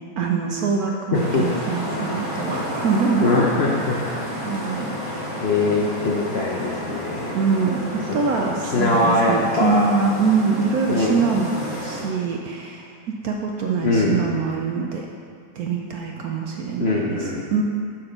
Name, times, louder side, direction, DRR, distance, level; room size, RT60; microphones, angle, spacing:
voice 1, 0.2-3.4 3.8-4.9 7.3-12.9 13.2-15.1 15.6-17.6, right 5 dB, 70° right, 1 dB, 1.0 m, -24 dB
voice 2, 1.1-1.5 3.2-4.0 5.4-7.3 8.0-9.9 10.9-11.3 13.8-14.5 16.8-17.5, left 2 dB, 60° left, -2 dB, 0.7 m, -22 dB
sound 1, 1.1-12.0, equal, 40° left, 1.7 m, -31 dB
8.8 x 4.1 x 6.5 m, 2.2 s
omnidirectional pair, 1.9 m